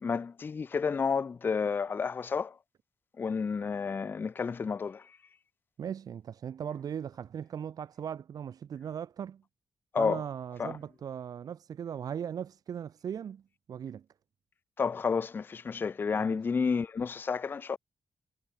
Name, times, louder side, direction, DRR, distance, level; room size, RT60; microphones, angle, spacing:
voice 1, 0.0-2.5 3.2-5.0 9.9-10.2 10.6-10.7 14.8-17.8, left 5 dB, 30° left, 0.3 m, -30 dB
voice 2, 5.8-9.4 10.0-13.4 13.7-14.0 16.1-16.4, right 8 dB, 70° right, 2.8 m, -38 dB
cardioid pair, 110°, 7 cm